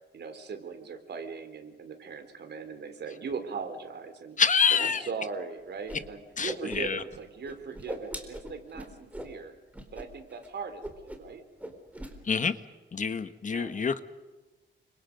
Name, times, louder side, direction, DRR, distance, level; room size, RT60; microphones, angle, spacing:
voice 1, 0.1-4.4 4.8-9.5 9.9-11.4 13.5-13.7, right 5 dB, 60° right, 7 dB, 3.9 m, -39 dB
voice 2, 4.4-5.0 6.4-7.0 12.2-12.6 12.9-14.0, left 6 dB, 40° left, 11 dB, 1.5 m, -26 dB
Whoosh swoosh swish, 5.9-6.0 6.3-7.2 7.4-9.3 9.7-10.1 10.3-10.5 10.8-11.3 11.6-12.1, right 1 dB, 5° right, 4.0 m, -40 dB
29.5 x 25.5 x 5.4 m, 1.2 s
wide cardioid pair, 130°, 19 cm